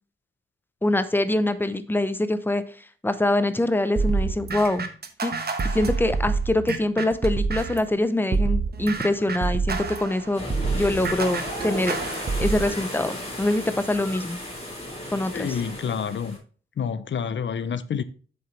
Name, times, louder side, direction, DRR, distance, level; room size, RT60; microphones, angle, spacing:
voice 1, 0.8-2.6 3.0-4.9 5.2-5.3 5.7-10.4 10.7-12.0 12.4-14.4 15.1-15.5, left 1 dB, 10° left, 0.7 m, -24 dB
sound 1, 4.0-7.9 8.3-12.7, right 4 dB, 50° right, 1.1 m, -27 dB
sound 2, 8.7-16.4, left 1 dB, 30° left, 4.4 m, -35 dB
voice 2, 15.3-16.4 16.8-18.0, left 7 dB, 65° left, 0.6 m, -28 dB
8.2 x 6.8 x 3.2 m
wide cardioid pair, 125°, 21 cm